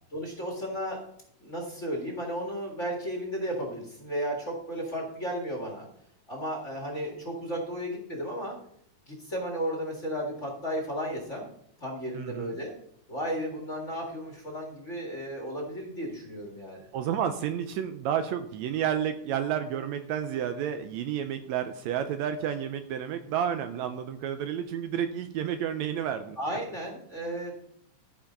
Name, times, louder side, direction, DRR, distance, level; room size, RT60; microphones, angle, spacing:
voice 1, 0.1-1.0 1.4-5.9 6.3-8.6 9.1-11.5 11.8-12.7 13.1-16.9 26.4-27.5, equal, 30° left, 1 dB, 1.8 m, -34 dB
voice 2, 12.2-12.5 16.9-26.4, right 9 dB, 75° right, 8 dB, 1.8 m, -31 dB
14.0 x 5.0 x 5.2 m, 0.70 s
omnidirectional pair, 3.5 m